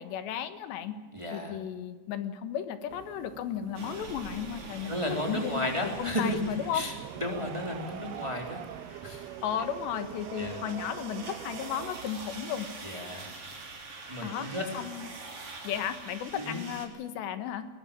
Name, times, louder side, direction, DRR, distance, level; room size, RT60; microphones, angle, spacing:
voice 1, 0.0-1.0 1.3-6.8 9.4-13.0 14.2-15.1 15.6-17.7, left 9 dB, 90° left, 10 dB, 3.7 m, -34 dB
voice 2, 1.1-1.6 4.9-9.2 10.4-10.6 12.8-13.3 14.1-14.6 16.3-16.6, left 1 dB, 10° right, 2 dB, 3.0 m, -34 dB
sound 1, 2.9-12.0, right 12 dB, 75° right, 2.7 m, -44 dB
sound 2, 3.7-16.9, right 3 dB, 35° right, 3.9 m, -45 dB
21.0 x 20.0 x 8.7 m, 1.3 s
omnidirectional pair, 4.9 m